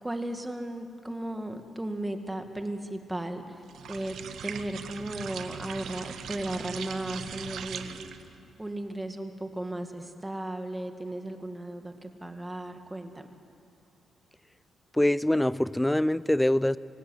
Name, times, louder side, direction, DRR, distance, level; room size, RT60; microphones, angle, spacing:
voice 1, 0.0-4.2 4.4-8.1 8.6-13.3, right 1 dB, 10° right, 6 dB, 2.1 m, -35 dB
sound 1, 3.7-8.3, right 8 dB, 75° right, 1.1 m, -40 dB
voice 2, 14.9-16.8, left 1 dB, 5° left, 18 dB, 0.5 m, -24 dB
26.5 x 16.5 x 9.8 m, 2.6 s
cardioid pair, 105°, 0 cm